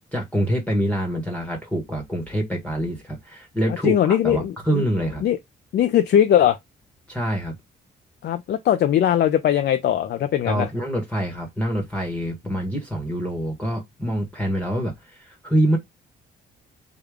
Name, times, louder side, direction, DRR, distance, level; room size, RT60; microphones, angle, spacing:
voice 1, 0.1-5.2 7.1-7.5 10.4-15.8, right 1 dB, 5° left, 1.1 m, -25 dB
voice 2, 3.8-4.8 5.2-5.4 5.7-6.6 8.2-10.7, left 10 dB, 55° left, 0.4 m, -20 dB
3.5 x 2.3 x 3.3 m
cardioid pair, 90°, 20 cm